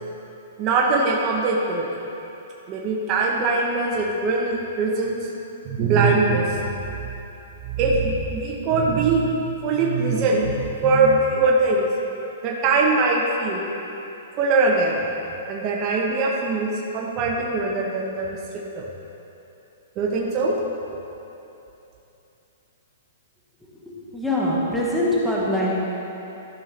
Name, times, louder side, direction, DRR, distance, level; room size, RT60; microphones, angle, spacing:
voice 1, 0.6-1.9 2.7-5.2 5.6-6.8 7.7-11.9 12.4-13.7 14.4-15.1 15.5-18.9 20.0-20.6, right 3 dB, 30° right, -2 dB, 0.8 m, -22 dB
voice 2, 23.9-25.8, left 1 dB, ahead, -6 dB, 1.2 m, -23 dB
13.0 x 5.5 x 3.3 m, 2.9 s
hypercardioid pair, 155°, 0 cm